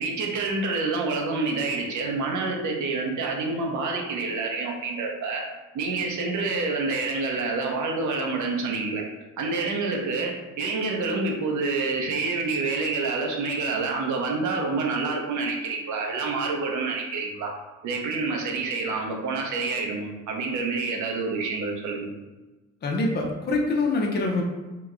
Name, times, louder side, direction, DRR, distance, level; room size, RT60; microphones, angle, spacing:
voice 1, 0.0-5.5 5.7-9.0 9.4-17.5 17.8-22.1, right 3 dB, 75° right, 1 dB, 0.7 m, -27 dB
voice 2, 22.8-24.4, left 2 dB, 35° left, 0 dB, 0.6 m, -25 dB
2.9 x 2.2 x 3.6 m, 1.2 s
cardioid pair, 90°, 30 cm